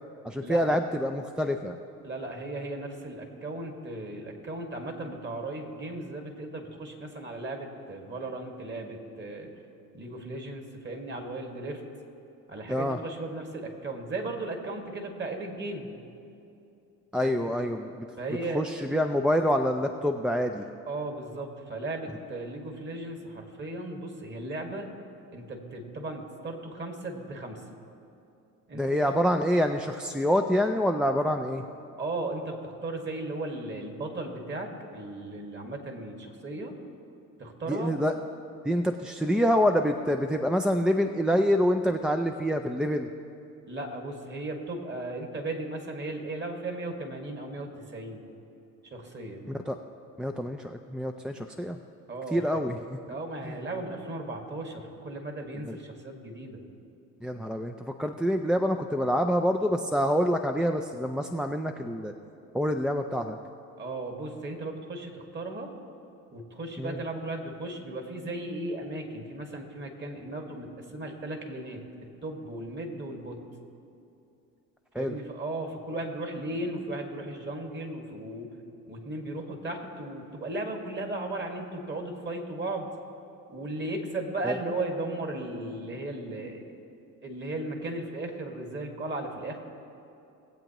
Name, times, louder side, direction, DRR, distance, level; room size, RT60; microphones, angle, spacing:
voice 1, 0.2-1.8 12.7-13.0 17.1-18.1 18.5-20.7 28.7-31.6 37.7-38.1 38.6-43.1 49.5-49.8 50.2-51.8 52.3-53.2 53.4-53.6 55.6-55.8 57.2-57.7 58.0-62.1 62.5-63.4 66.8-67.0 74.9-75.1 84.4-84.6, equal, ahead, 5 dB, 0.4 m, -26 dB
voice 2, 2.0-9.5 9.9-11.8 12.5-15.9 17.2-17.5 18.2-18.7 20.9-24.9 25.3-27.6 28.7-29.0 32.0-36.7 37.4-37.9 43.7-48.2 48.9-49.5 52.1-52.6 53.1-56.6 63.8-65.7 66.3-71.8 72.2-73.4 75.0-78.5 78.9-82.9 83.5-86.6 87.2-89.6, right 2 dB, 30° right, 3 dB, 1.9 m, -36 dB
20.0 x 7.9 x 3.0 m, 2.7 s
supercardioid pair, 80°, 38 cm